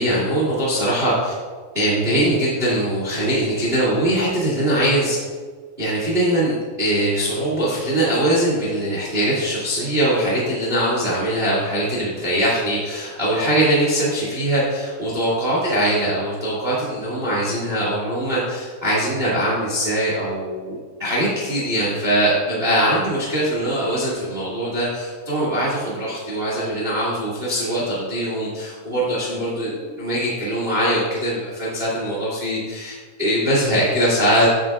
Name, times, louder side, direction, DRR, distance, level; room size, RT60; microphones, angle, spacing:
voice 1, 0.0-1.3 1.7-5.2 5.8-34.5, right 1 dB, 35° right, -6 dB, 1.0 m, -22 dB
10.5 x 8.2 x 2.5 m, 1.5 s
omnidirectional pair, 5.6 m